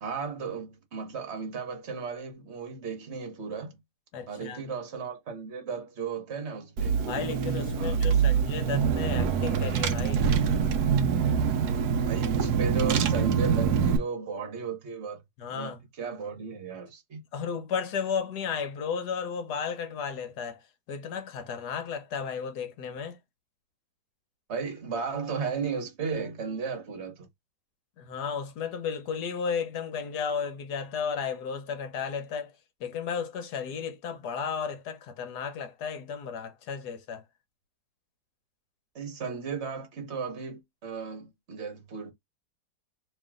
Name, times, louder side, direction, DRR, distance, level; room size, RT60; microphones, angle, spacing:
voice 1, 0.0-3.8 4.3-7.0 7.8-8.2 12.1-15.2 15.5-17.2 24.5-27.3 38.9-42.1, right 5 dB, 40° right, 1.4 m, -35 dB
voice 2, 4.1-4.6 7.1-10.3 15.4-15.8 17.3-20.6 20.9-23.2 28.0-32.5 32.8-37.2, left 6 dB, 65° left, 1.4 m, -34 dB
Car / Engine, 6.8-14.0, right 7 dB, 70° right, 1.2 m, -25 dB
3.1 x 3.1 x 3.7 m
omnidirectional pair, 1.9 m